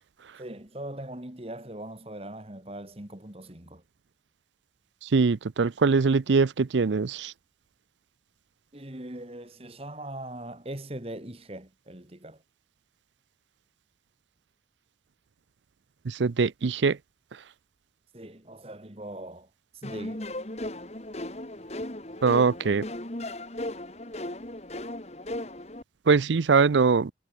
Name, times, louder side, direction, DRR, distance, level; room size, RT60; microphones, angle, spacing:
voice 1, 0.4-3.8 8.7-12.4 18.1-20.3, right 1 dB, 35° right, 2.0 m, -41 dB
voice 2, 5.0-7.3 16.0-17.0 22.2-22.9 26.1-27.1, right 4 dB, 85° right, 0.5 m, -22 dB
sound 1, 19.8-25.8, left 1 dB, 35° left, 2.1 m, -36 dB
head